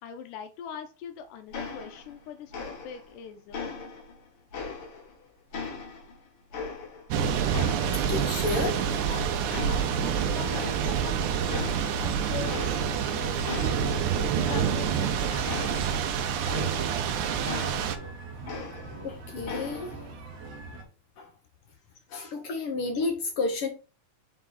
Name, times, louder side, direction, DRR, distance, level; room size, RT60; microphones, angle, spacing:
voice 1, 0.0-3.6 9.1-9.3 9.7-11.6 12.0-12.5 13.1-15.7, left 8 dB, 90° left, 6 dB, 2.2 m, -42 dB
sound 1, 1.5-2.2 2.5-3.1 3.5-5.1 5.5-7.2 7.5-9.1 9.5-10.2 10.5-11.1 11.5-12.1 12.4-13.1 13.4-17.1 17.5-19.1 19.4-20.1, left 4 dB, 50° left, 2.1 m, -39 dB
Thunder / Rain, 7.1-18.0, right 8 dB, 75° right, 2.2 m, -27 dB
voice 2, 8.1-8.8 19.0-19.9 21.2-21.3 22.1-23.7, left 3 dB, 75° left, 4 dB, 1.3 m, -31 dB
sound 2, 14.4-20.8, right 3 dB, 60° right, 1.9 m, -42 dB
5.5 x 4.8 x 3.9 m, 0.33 s
omnidirectional pair, 3.7 m